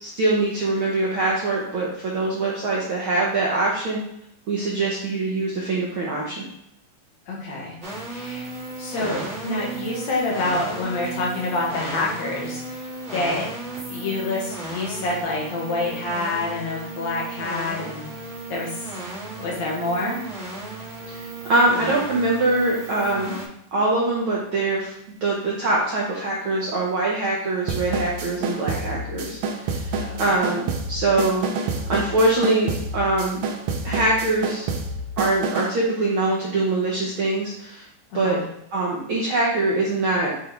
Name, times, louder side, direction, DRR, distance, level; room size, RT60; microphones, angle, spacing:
voice 1, 0.0-4.0 4.5-6.5 21.1-23.4 23.7-24.9 25.2-31.5 31.9-33.4 33.8-34.7 35.2-37.9 38.1-38.4 38.7-40.3, right 2 dB, 70° right, -4 dB, 1.2 m, -23 dB
voice 2, 7.3-7.8 8.1-8.5 8.8-13.5 13.9-18.1 18.5-18.9 19.4-20.2 30.0-30.3 38.1-38.4, left 2 dB, 65° left, -3 dB, 2.6 m, -27 dB
sound 1, 7.8-23.5, right 2 dB, 40° right, 2.5 m, -35 dB
sound 2, 27.7-35.8, right 3 dB, 85° right, 1.3 m, -28 dB
8.4 x 3.5 x 3.4 m, 0.78 s
omnidirectional pair, 3.7 m